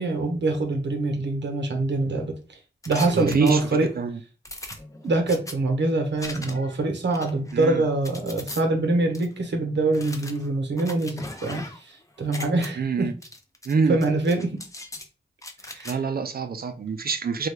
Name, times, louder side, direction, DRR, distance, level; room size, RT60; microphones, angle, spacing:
voice 1, 0.0-2.3 2.9-3.9 5.0-13.1 13.9-14.6 15.7-16.0, right 2 dB, 70° right, 0.8 m, -24 dB
sound 1, 2.8-3.9 4.4-5.5 6.2-6.7 7.1-8.6 9.1-9.3 9.9-11.9 12.2-12.7 13.2-13.7 14.0-15.1 15.4-15.9, left 2 dB, 15° left, 0.5 m, -39 dB
voice 2, 3.1-3.6 4.0-4.2 7.5-7.8 12.8-13.1 13.7-14.0 15.9-17.5, right 5 dB, 55° right, 0.4 m, -25 dB
3.4 x 2.2 x 3.2 m
cardioid pair, 60°, 19 cm